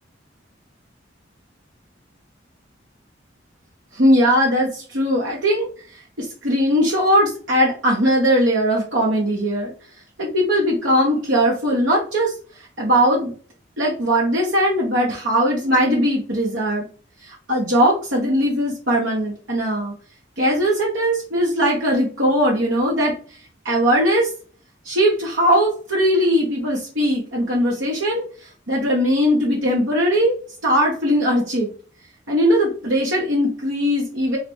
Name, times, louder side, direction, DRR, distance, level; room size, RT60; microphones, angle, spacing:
voice 1, 3.9-5.7 6.2-9.7 10.2-12.3 12.8-13.3 13.8-16.9 17.2-19.9 20.4-23.1 23.6-24.3 24.8-30.3 30.6-31.7 32.3-34.4, equal, 85° right, -4 dB, 1.3 m, -19 dB
3.8 x 3.4 x 3.2 m, 0.40 s
head